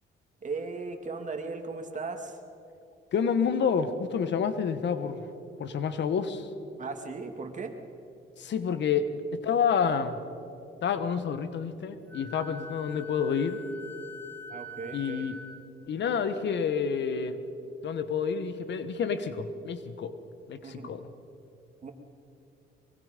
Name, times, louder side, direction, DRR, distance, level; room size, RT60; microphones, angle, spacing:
voice 1, 0.4-2.4 6.8-7.7 14.5-15.3 20.6-20.9 21.8-21.9, right 4 dB, 40° right, 5 dB, 2.3 m, -37 dB
voice 2, 3.1-5.3 5.6-6.5 8.4-10.2 10.8-13.6 14.9-15.4 15.9-17.4 17.8-20.1 20.5-21.0, left 6 dB, 65° left, 11 dB, 1.4 m, -29 dB
Wind instrument woodwind instrument, 12.1-15.6, left 1 dB, 10° left, 1.9 m, -44 dB
23.0 x 23.0 x 5.3 m, 2.7 s
cardioid pair, 90°, 20 cm